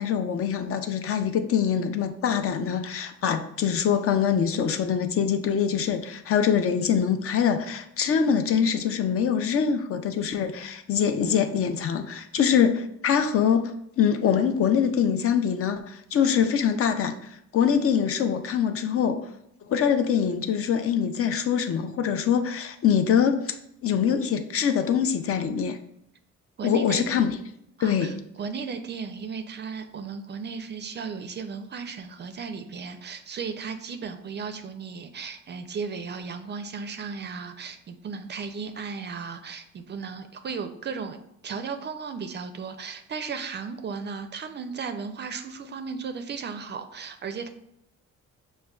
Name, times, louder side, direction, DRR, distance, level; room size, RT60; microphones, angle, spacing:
voice 1, 0.0-17.1 17.5-19.2 19.7-23.5 23.8-25.8 26.6-27.3 27.8-28.2, left 7 dB, 50° left, 8 dB, 0.4 m, -24 dB
voice 2, 26.6-27.0 27.8-41.2 41.4-47.5, right 5 dB, 35° right, 7 dB, 0.4 m, -35 dB
6.2 x 2.1 x 2.3 m, 0.76 s
cardioid pair, 90°, 30 cm